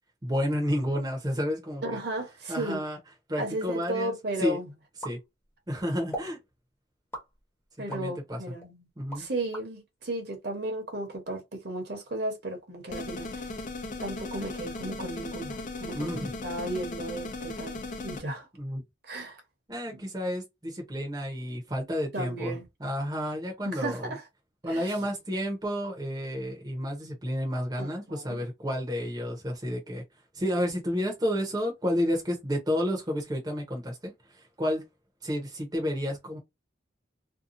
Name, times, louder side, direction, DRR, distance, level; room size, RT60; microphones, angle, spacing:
voice 1, 0.2-2.0 2.5-3.0 3.3-4.1 4.4-4.6 5.0-5.2 5.7-6.4 7.9-8.4 9.0-9.3 15.9-16.3 18.6-18.8 19.7-24.1 24.6-30.0 30.3-34.8 35.2-36.4, equal, 20° right, 0.8 m, -31 dB
voice 2, 1.8-2.8 3.4-4.7 7.8-8.9 9.1-13.5 14.0-18.5 19.0-19.4 19.9-20.0 22.1-22.6 23.6-24.2 24.7-24.9 27.8-28.4, right 1 dB, 60° right, 1.0 m, -35 dB
sound 1, 5.0-5.7 6.1-6.4 7.1-8.1 8.6-9.7, right 1 dB, 15° left, 0.9 m, -40 dB
sound 2, 12.9-18.2, left 2 dB, 45° left, 0.5 m, -37 dB
2.7 x 2.3 x 2.5 m
head